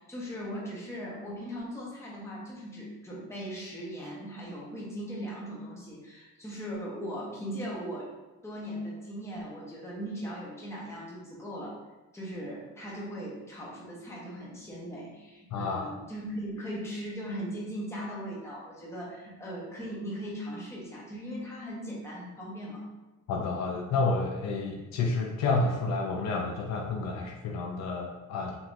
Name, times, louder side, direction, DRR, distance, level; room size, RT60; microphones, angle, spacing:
voice 1, 0.0-8.1 8.4-11.8 12.1-22.8, equal, 10° left, -5 dB, 1.0 m, -39 dB
voice 2, 15.5-15.9 23.3-28.6, left 3 dB, 60° left, 1 dB, 0.5 m, -30 dB
5.4 x 2.9 x 2.5 m, 1.1 s
cardioid pair, 150°, 31 cm